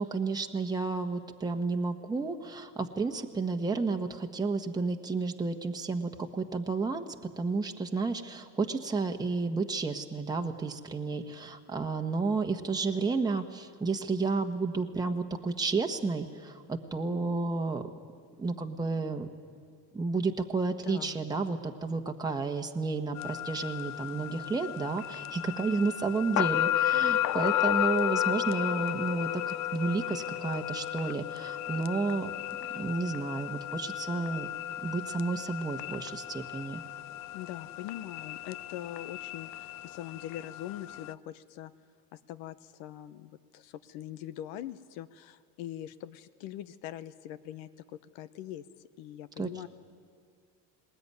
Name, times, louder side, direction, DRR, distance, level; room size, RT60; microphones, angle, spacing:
voice 1, 0.0-7.1 7.4-17.8 18.4-19.3 19.9-32.3 32.7-34.5 34.8-36.8 49.4-49.7, right 4 dB, 10° right, 3 dB, 1.3 m, -31 dB
voice 2, 20.8-21.2 37.3-41.7 42.1-48.6 49.0-49.7, left 12 dB, 80° left, 14 dB, 1.0 m, -42 dB
sound 1, 23.2-41.1, left 12 dB, 50° left, 0.6 m, -33 dB
20.5 x 20.0 x 9.6 m, 2.2 s
cardioid pair, 120°, 37 cm